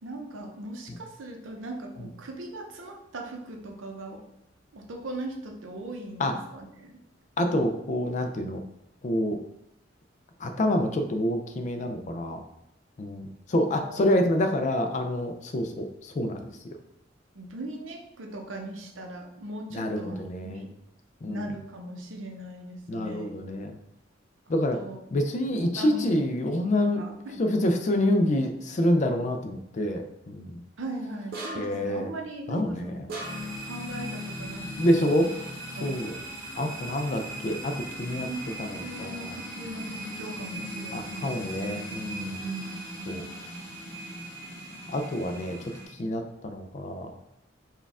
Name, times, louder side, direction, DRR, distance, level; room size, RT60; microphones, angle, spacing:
voice 1, 0.0-4.2 4.7-7.0 13.5-14.3 17.3-20.7 21.3-23.3 24.7-25.0 25.8-26.1 26.8-27.4 30.8-33.1 33.6-34.7 35.8-36.3 38.0-41.6 42.3-42.8, right 2 dB, 90° right, 2 dB, 0.7 m, -39 dB
voice 2, 7.4-8.6 9.0-9.4 10.4-12.4 13.0-16.5 19.7-20.6 21.2-21.5 22.9-23.7 24.5-24.8 25.1-27.0 27.4-30.6 31.6-32.1 32.5-33.0 34.7-35.5 35.8-36.1 36.6-38.3 38.6-39.3 40.9-42.4 43.1-43.2 44.9-45.6 46.0-47.1, left 1 dB, 40° left, 6 dB, 0.4 m, -27 dB
Hit - Metalic Bin, 31.3-31.9 33.1-33.7, right 2 dB, 50° right, 0.8 m, -37 dB
sound 1, 33.2-45.8, right 1 dB, 15° left, 0.9 m, -38 dB
4.3 x 2.3 x 3.5 m, 0.81 s
head